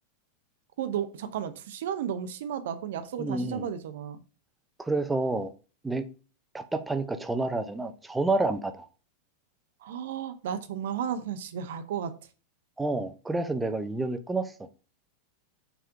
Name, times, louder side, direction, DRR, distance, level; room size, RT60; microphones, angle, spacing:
voice 1, 0.8-4.2 9.8-12.1, right 8 dB, 55° right, 0.7 m, -33 dB
voice 2, 3.2-3.7 4.8-5.5 5.8-6.1 6.5-8.9 12.8-14.5, right 2 dB, 10° right, 0.7 m, -29 dB
6.0 x 3.6 x 5.6 m
figure-of-eight pair, 90°, 0 cm